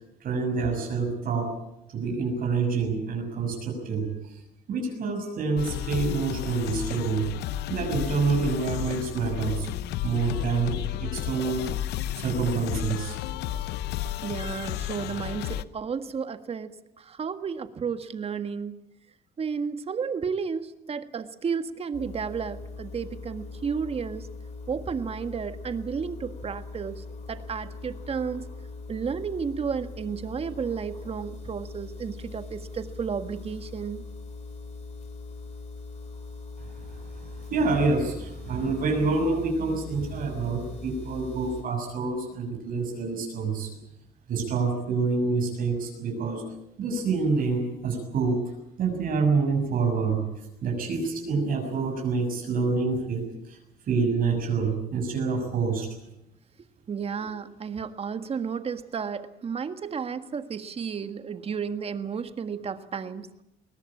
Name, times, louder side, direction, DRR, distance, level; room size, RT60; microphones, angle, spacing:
voice 1, 0.2-1.5 1.9-4.4 4.7-7.3 7.7-9.7 10.0-11.7 12.2-13.2 36.6-36.9 37.2-43.7 44.3-46.4 46.8-48.4 48.8-50.2 50.6-53.6 53.9-55.9, right 4 dB, 55° right, 2 dB, 6.6 m, -27 dB
sound 1, 5.6-15.6, left 13 dB, 80° left, 0.8 m, -32 dB
voice 2, 14.2-18.8 19.4-24.3 24.7-28.5 28.9-34.0 46.9-47.0 56.9-63.3, right 6 dB, 35° right, 10 dB, 1.6 m, -32 dB
sound 2, 21.9-41.6, left 3 dB, 45° left, 7.0 m, -41 dB
21.5 x 19.5 x 8.7 m, 0.84 s
cardioid pair, 110°, 17 cm